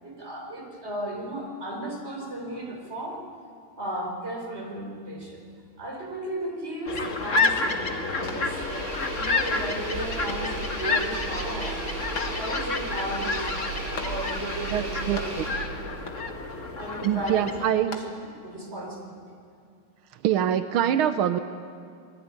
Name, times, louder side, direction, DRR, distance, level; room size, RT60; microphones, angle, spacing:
voice 1, 0.0-3.2 3.8-5.4 5.8-7.8 8.2-11.8 12.1-13.7 14.0-15.9 16.7-18.1 18.4-19.2, right 1 dB, 30° right, 1 dB, 5.2 m, -35 dB
sound 1, 6.9-17.7, left 3 dB, 40° left, 2.0 m, -30 dB
Engine, 8.2-15.9, right 3 dB, 45° right, 6.6 m, -36 dB
Hyacinthe hand clap edited, 8.3-9.0 9.4-9.5 10.3-10.9 12.1-12.8 13.9-14.6 14.8-15.7 16.0-16.5 17.5-18.5, left 4 dB, 75° left, 2.8 m, -42 dB
voice 2, 14.7-15.2 17.0-18.0 20.2-21.4, right 10 dB, 90° right, 9 dB, 1.7 m, -24 dB
26.5 x 21.5 x 9.8 m, 2.3 s
omnidirectional pair, 2.2 m